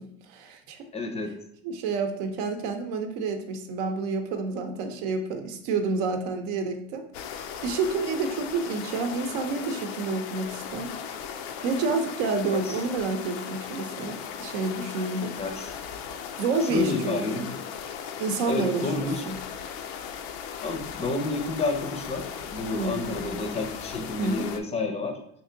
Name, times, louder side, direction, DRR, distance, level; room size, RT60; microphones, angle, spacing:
voice 1, 0.0-0.9 1.6-11.0 11.6-15.3 16.4-17.5 18.2-19.4 22.7-23.1 24.2-24.5, right 4 dB, 75° right, 6 dB, 0.7 m, -29 dB
voice 2, 0.9-1.4 12.5-12.8 15.4-15.7 16.6-17.5 18.5-19.2 20.6-25.2, left 3 dB, 20° left, 5 dB, 0.5 m, -30 dB
sound 1, 7.1-24.6, left 7 dB, 90° left, 0.5 m, -37 dB
3.2 x 2.6 x 3.8 m, 0.71 s
supercardioid pair, 120°, 31 cm